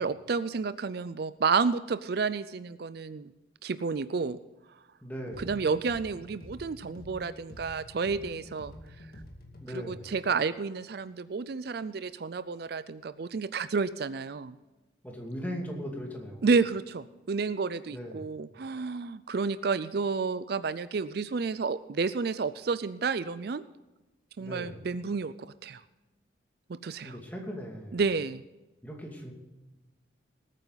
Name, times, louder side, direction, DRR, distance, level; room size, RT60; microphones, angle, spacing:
voice 1, 0.0-3.3 3.6-4.4 5.4-8.7 9.7-14.6 16.4-23.6 24.4-25.8 26.7-27.2 27.9-28.4, right 4 dB, 55° right, 14 dB, 0.4 m, -30 dB
voice 2, 5.0-5.5 9.6-10.1 15.0-16.5 17.9-18.3 24.4-24.8 27.0-28.0 28.8-29.3, equal, 10° left, 0 dB, 2.4 m, -39 dB
sound 1, 5.3-9.8, left 1 dB, 50° left, 2.2 m, -48 dB
19.5 x 9.1 x 4.0 m, 1.1 s
head